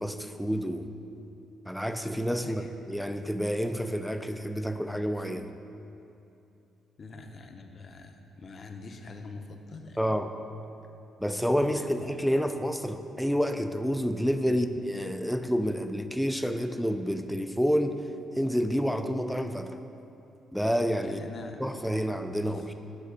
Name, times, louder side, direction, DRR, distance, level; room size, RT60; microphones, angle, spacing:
voice 1, 0.0-0.9 1.7-5.5 10.0-10.3 11.2-18.0 18.4-19.7 20.5-21.2 21.6-22.7, equal, ahead, 7 dB, 0.4 m, -29 dB
voice 2, 2.4-2.7 7.0-10.0 11.6-11.9 14.5-14.7 21.0-21.6 22.3-22.7, left 3 dB, 45° left, 4 dB, 0.7 m, -44 dB
9.0 x 4.0 x 6.7 m, 2.9 s
cardioid pair, 90°, 0 cm